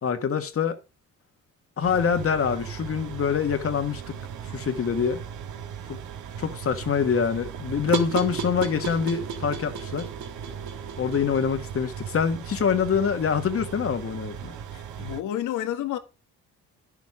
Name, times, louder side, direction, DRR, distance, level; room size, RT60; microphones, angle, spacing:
voice 1, 0.0-0.8 1.8-4.2 4.4-5.2 5.9-6.0 6.4-10.1 11.0-14.5, left 6 dB, 50° left, 1.6 m, -25 dB
sound 1, 1.8-15.2, right 8 dB, 85° right, 1.5 m, -38 dB
sound 2, 6.6-11.5, right 5 dB, 70° right, 1.6 m, -34 dB
voice 2, 14.7-16.0, left 12 dB, 90° left, 1.5 m, -30 dB
10.5 x 7.3 x 4.9 m
cardioid pair, 90°, 30 cm